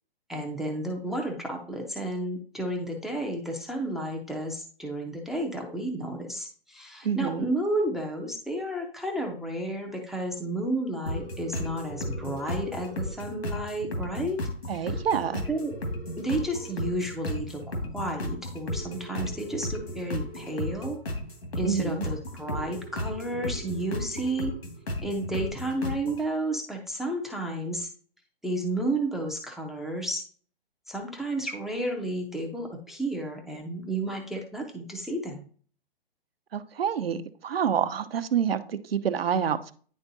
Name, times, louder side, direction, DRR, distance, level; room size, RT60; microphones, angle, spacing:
voice 1, 0.3-14.4 14.7-15.0 15.5-15.7 16.2-21.0 21.6-24.5 25.0-27.9 28.4-30.2 30.9-35.5, right 1 dB, ahead, 0 dB, 0.5 m, -32 dB
voice 2, 7.0-7.5 14.7-15.4 21.6-22.1 36.5-39.7, right 8 dB, 75° right, 10 dB, 0.9 m, -27 dB
sound 1, 11.1-26.2, left 1 dB, 85° left, 1.9 m, -34 dB
10.5 x 3.6 x 2.7 m, 0.43 s
hypercardioid pair, 140°, 30 cm